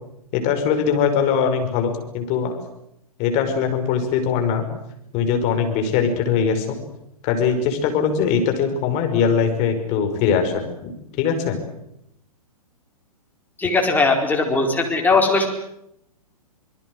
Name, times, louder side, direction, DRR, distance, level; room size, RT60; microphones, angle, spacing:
voice 1, 0.3-2.6 3.2-4.7 5.1-6.8 7.2-11.6, left 6 dB, 35° left, 6 dB, 5.4 m, -21 dB
voice 2, 13.6-15.5, left 3 dB, 10° left, 2 dB, 4.7 m, -19 dB
25.5 x 21.5 x 8.0 m, 0.80 s
figure-of-eight pair, 115°, 19 cm